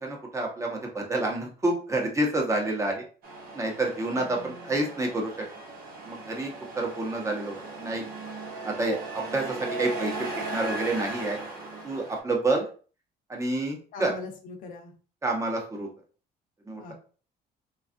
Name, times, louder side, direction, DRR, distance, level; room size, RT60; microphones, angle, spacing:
voice 1, 0.0-3.0 3.5-5.3 6.1-6.5 6.8-8.0 8.6-11.4 11.8-12.6 13.3-14.1 15.2-15.9 16.7-16.9, right 2 dB, 20° right, 0 dB, 0.9 m, -28 dB
Truck, 3.2-12.2, right 3 dB, 60° right, 1.0 m, -38 dB
voice 2, 4.1-4.9 13.9-14.9 16.8-16.9, left 3 dB, 55° left, 1 dB, 0.7 m, -42 dB
3.3 x 2.4 x 2.5 m, 0.39 s
cardioid pair, 110°, 17 cm